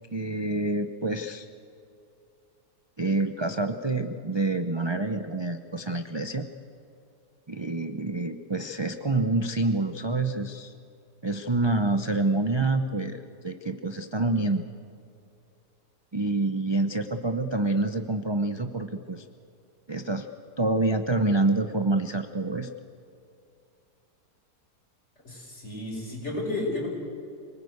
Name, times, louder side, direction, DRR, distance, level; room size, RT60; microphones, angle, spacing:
voice 1, 0.1-1.5 3.0-6.5 7.5-10.7 11.2-14.7 16.1-19.3 19.9-20.3 20.6-22.7, right 2 dB, 30° right, 8 dB, 0.4 m, -27 dB
voice 2, 25.2-26.9, left 2 dB, 40° left, -1 dB, 5.7 m, -32 dB
26.5 x 19.5 x 8.1 m, 2.7 s
omnidirectional pair, 1.8 m